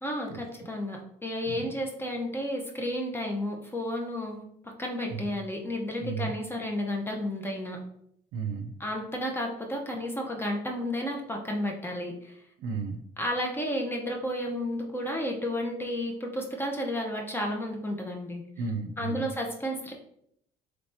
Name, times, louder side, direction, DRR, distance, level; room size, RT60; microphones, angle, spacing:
voice 1, 0.0-4.4 4.8-7.8 8.8-12.3 13.2-18.4 19.0-19.9, left 1 dB, 15° left, 1 dB, 0.7 m, -32 dB
voice 2, 6.0-6.3 8.3-8.7 12.6-13.0 18.6-19.3, right 5 dB, 85° right, 6 dB, 0.5 m, -34 dB
3.3 x 3.2 x 2.7 m, 0.72 s
cardioid pair, 110°, 17 cm